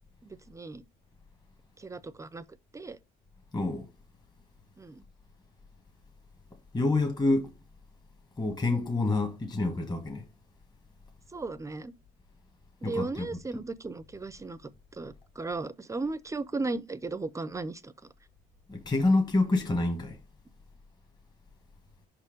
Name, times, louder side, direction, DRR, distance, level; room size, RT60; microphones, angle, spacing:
voice 1, 0.2-0.8 1.8-2.4 2.7-3.0 4.8-5.0 8.6-8.9 11.3-11.9 12.8-14.6 14.9-17.9, right 3 dB, 20° right, 0.5 m, -36 dB
voice 2, 3.5-3.9 6.7-7.5 8.4-10.3 12.8-13.3 18.7-20.2, left 2 dB, 25° left, 1.4 m, -27 dB
5.5 x 4.4 x 5.1 m
cardioid pair, 110°, 17 cm